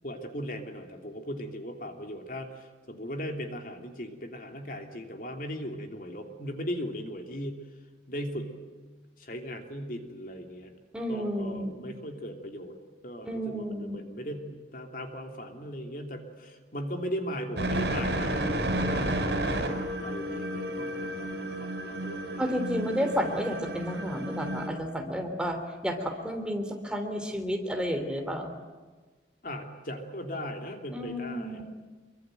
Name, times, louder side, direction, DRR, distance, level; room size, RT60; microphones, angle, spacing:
voice 1, 0.0-7.6 8.1-8.5 9.2-10.7 11.1-12.8 13.0-23.1 29.4-31.6, equal, 50° left, 5 dB, 2.9 m, -38 dB
voice 2, 10.9-11.7 13.2-14.0 22.4-25.6 25.8-28.5 30.9-31.6, equal, 5° right, 4 dB, 3.1 m, -31 dB
sound 1, 17.6-24.7, right 1 dB, 65° right, 6.3 m, -31 dB
26.5 x 23.5 x 9.1 m, 1.3 s
head